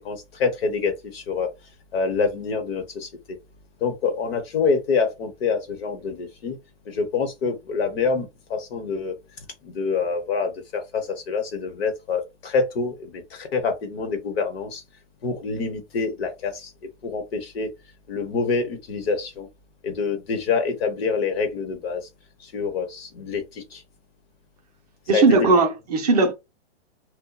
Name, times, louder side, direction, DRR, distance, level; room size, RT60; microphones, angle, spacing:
voice 1, 0.0-1.5 1.9-3.4 3.8-6.6 6.9-9.1 9.6-14.8 15.2-16.7 17.0-17.7 18.1-19.5 19.8-22.1 22.4-23.8 25.1-25.5, left 4 dB, 55° left, 1.0 m, -26 dB
voice 2, 25.1-26.3, right 3 dB, 35° right, 0.5 m, -18 dB
2.7 x 2.1 x 2.3 m
hypercardioid pair, 150°, 35 cm